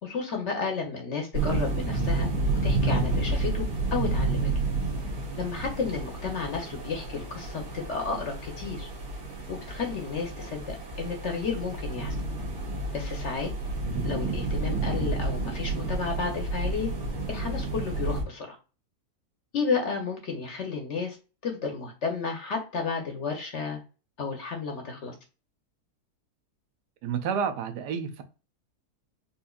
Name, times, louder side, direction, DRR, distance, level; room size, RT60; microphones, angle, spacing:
voice 1, 0.0-4.5 5.4-8.9 9.5-12.1 12.9-13.5 14.0-16.9 17.3-18.6 19.5-21.2 21.4-23.8 24.2-25.1, left 5 dB, 55° left, 0.8 m, -32 dB
sound 1, 1.3-18.2, right 2 dB, 65° right, 1.6 m, -30 dB
voice 2, 27.0-28.2, right 7 dB, 85° right, 1.2 m, -30 dB
4.2 x 2.4 x 2.3 m
omnidirectional pair, 1.7 m